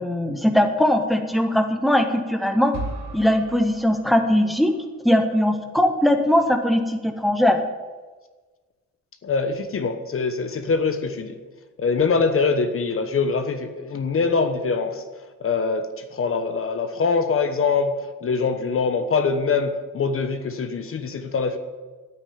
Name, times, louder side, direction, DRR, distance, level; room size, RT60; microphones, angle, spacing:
voice 1, 0.0-2.7 3.1-4.7 5.0-7.6, left 1 dB, ahead, 4 dB, 1.5 m, -20 dB
sound 1, 2.7-4.8, right 2 dB, 60° right, 2.6 m, -36 dB
voice 2, 9.2-11.3 11.8-15.0 15.4-21.6, left 4 dB, 45° left, 8 dB, 1.2 m, -23 dB
9.7 x 9.1 x 9.9 m, 1.3 s
cardioid pair, 90°, 30 cm